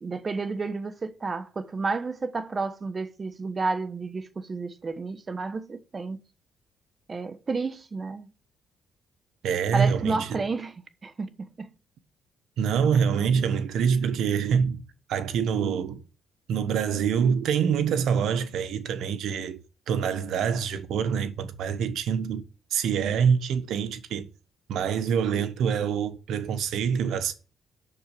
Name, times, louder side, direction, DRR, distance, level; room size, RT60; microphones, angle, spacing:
voice 1, 0.0-6.2 7.1-8.3 9.7-11.7, right 4 dB, 35° right, 1.1 m, -31 dB
voice 2, 9.4-10.4 12.6-14.8 15.1-16.0 16.5-24.3 24.7-27.3, right 7 dB, 75° right, 1.3 m, -25 dB
7.9 x 6.5 x 7.7 m
cardioid pair, 90°, 0 cm